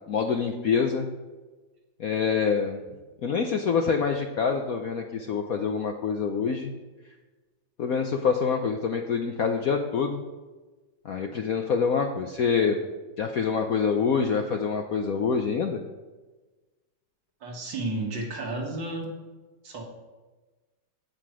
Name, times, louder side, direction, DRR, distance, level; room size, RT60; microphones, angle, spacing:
voice 1, 0.1-1.1 2.0-2.8 3.2-6.7 7.8-10.2 11.0-12.9 13.2-15.8, left 6 dB, 65° left, 4 dB, 0.9 m, -26 dB
voice 2, 17.4-19.1 19.6-19.8, right 2 dB, 65° right, 0 dB, 2.5 m, -32 dB
15.5 x 5.9 x 4.9 m, 1.2 s
omnidirectional pair, 2.2 m